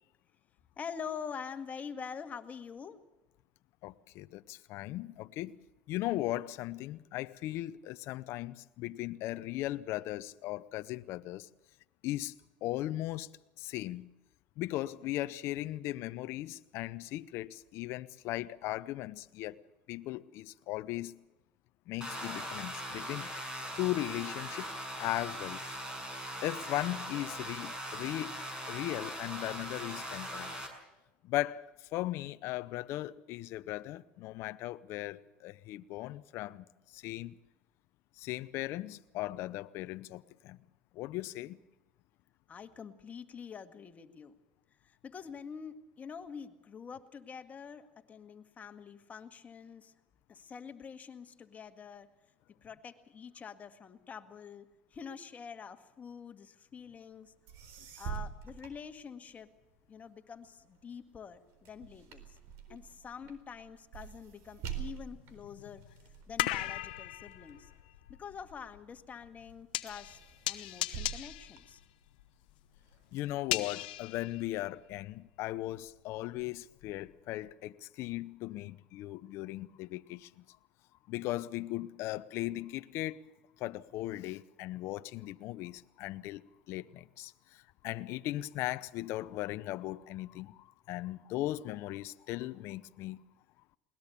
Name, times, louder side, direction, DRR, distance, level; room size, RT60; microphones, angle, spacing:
voice 1, 0.8-3.0 42.5-44.3 44.8-49.9 50.3-52.1 52.6-54.7 54.9-57.3 58.0-59.5 59.9-62.4 62.7-65.8 66.3-67.7 68.1-70.2 70.5-71.8, left 6 dB, 30° left, 1.9 m, -46 dB
voice 2, 3.8-5.6 5.9-11.5 12.0-12.4 12.6-13.3 13.6-14.1 14.6-19.6 19.9-21.2 21.9-23.3 23.8-24.7 25.0-25.6 26.4-30.6 31.2-36.6 36.9-37.4 38.2-40.6 40.9-41.6 73.1-80.6 81.1-83.3 83.6-93.2, left 16 dB, 60° left, 0.7 m, -38 dB
sound 1, 22.0-30.7, equal, 15° right, 6.4 m, -40 dB
sound 2, 57.2-57.3 57.5-59.6 60.0-68.7 69.2-69.6 69.9-72.4 72.8-73.8, right 8 dB, 65° right, 4.2 m, -46 dB
sound 3, 64.3-64.4 65.0-75.1 75.5-77.1 77.5-77.6, left 17 dB, 80° left, 1.0 m, -39 dB
21.0 x 19.5 x 7.0 m
supercardioid pair, 90°, 5 cm